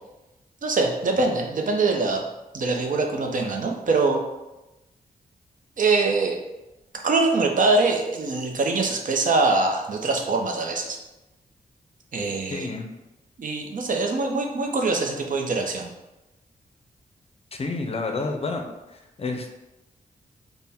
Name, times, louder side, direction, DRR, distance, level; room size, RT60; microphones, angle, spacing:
voice 1, 0.6-2.2 2.5-4.2 5.8-6.4 7.0-11.0 12.1-12.7 13.4-15.9, right 3 dB, 55° right, 2 dB, 0.6 m, -23 dB
voice 2, 12.5-12.9 17.5-18.6 18.9-19.5, left 3 dB, 40° left, 3 dB, 0.5 m, -30 dB
3.4 x 2.1 x 4.2 m, 1.0 s
cardioid pair, 80°, 16 cm